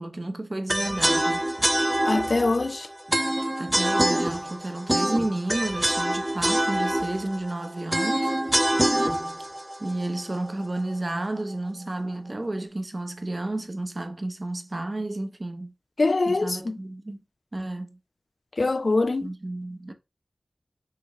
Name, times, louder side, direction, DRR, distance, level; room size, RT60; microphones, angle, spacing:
voice 1, 0.0-1.4 3.6-8.4 9.8-15.7 16.3-17.2 17.5-18.0 19.2-19.9, right 2 dB, 45° right, 0.7 m, -31 dB
sound 1, 0.7-10.8, right 1 dB, 20° right, 0.3 m, -25 dB
voice 2, 2.1-2.9 16.0-16.8 18.6-19.3, left 3 dB, 60° left, 0.3 m, -23 dB
5.7 x 2.2 x 3.0 m
wide cardioid pair, 45°, 0 cm